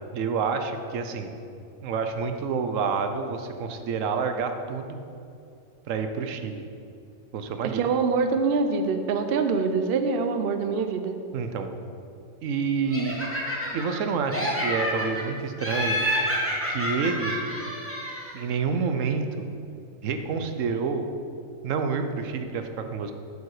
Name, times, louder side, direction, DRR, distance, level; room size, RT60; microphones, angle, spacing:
voice 1, 0.1-1.3 1.8-5.0 5.9-6.6 7.3-7.8 11.3-11.7 12.4-13.3 13.7-16.0 16.7-17.3 18.3-19.5 20.0-21.1 21.6-23.1, right 5 dB, 80° right, 7 dB, 1.0 m, -28 dB
voice 2, 7.7-11.2, right 4 dB, 60° right, 7 dB, 0.7 m, -24 dB
Laughter, 12.9-14.0 14.3-15.2 15.6-18.4, equal, 10° left, 1.3 m, -28 dB
8.2 x 7.2 x 4.8 m, 2.5 s
omnidirectional pair, 1.3 m